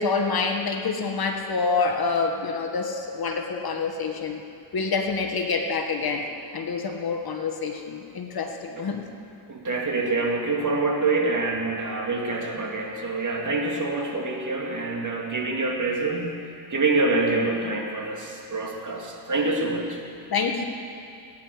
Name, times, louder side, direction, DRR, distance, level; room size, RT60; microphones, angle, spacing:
voice 1, 0.0-4.4 4.7-6.3 6.5-9.0 20.3-20.6, left 4 dB, 45° left, 4 dB, 1.4 m, -27 dB
voice 2, 9.5-16.4 16.7-20.0, right 3 dB, 35° right, 0 dB, 2.4 m, -26 dB
18.5 x 9.7 x 5.0 m, 2.5 s
cardioid pair, 75°, 50 cm